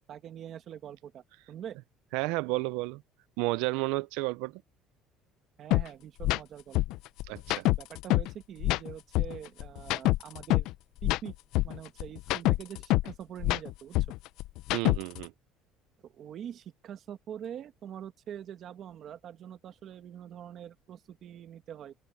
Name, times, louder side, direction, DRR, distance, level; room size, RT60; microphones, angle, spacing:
voice 1, 0.1-1.8 5.6-6.8 7.7-10.7 11.0-11.3 11.6-14.0 16.0-21.9, right 9 dB, 40° right, 1.6 m, -44 dB
voice 2, 2.1-3.0 3.4-4.6 7.3-7.7 14.7-15.3, right 22 dB, 85° right, 0.5 m, -31 dB
sound 1, 5.7-5.8 6.2-6.4 6.7-8.3 8.6-10.7 11.0-13.1 13.4-15.2, left 18 dB, 60° left, 0.5 m, -26 dB
open air
cardioid pair, 175°, 0 cm